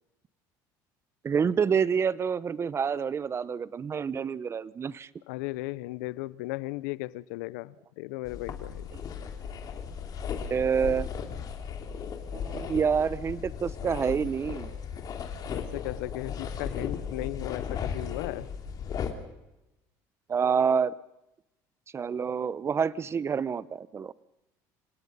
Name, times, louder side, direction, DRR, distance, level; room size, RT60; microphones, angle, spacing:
voice 1, 1.2-5.1 10.5-11.1 12.3-14.7 20.3-20.9 21.9-24.1, right 6 dB, 30° right, 0.8 m, -27 dB
voice 2, 5.3-8.9 15.5-18.5, left 19 dB, 90° left, 0.7 m, -36 dB
sound 1, 8.2-19.1, left 7 dB, 45° left, 3.1 m, -36 dB
27.0 x 18.0 x 5.5 m
supercardioid pair, 105°, 9 cm